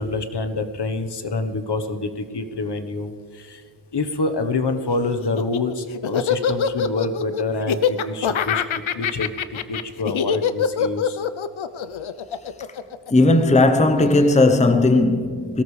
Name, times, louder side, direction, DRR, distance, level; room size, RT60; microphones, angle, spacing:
voice 1, 0.0-3.6 3.9-9.3 9.7-11.2, left 3 dB, 55° left, 1.3 m, -27 dB
Laughter, 5.2-13.6, left 7 dB, 75° left, 0.7 m, -24 dB
voice 2, 13.1-15.6, left 2 dB, 15° left, 0.8 m, -16 dB
22.0 x 18.0 x 3.3 m
wide cardioid pair, 95°, 48 cm